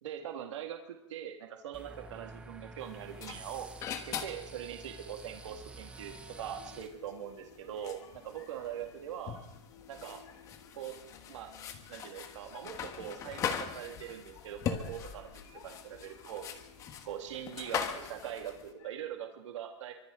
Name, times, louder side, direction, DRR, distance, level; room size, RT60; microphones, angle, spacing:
voice 1, 0.0-3.7 4.1-9.4 9.9-10.2 10.7-10.9 11.3-11.5 11.9-15.3 15.6-16.4 17.1-19.9, right 10 dB, 90° right, 3 dB, 2.1 m, -42 dB
sound 1, 1.7-6.9, right 2 dB, 5° right, 1.0 m, -49 dB
sound 2, 2.8-18.7, left 8 dB, 20° left, 1.4 m, -42 dB
sound 3, 6.3-19.3, left 6 dB, 75° left, 6.7 m, -58 dB
29.0 x 24.5 x 3.9 m, 0.91 s
supercardioid pair, 170°, 15 cm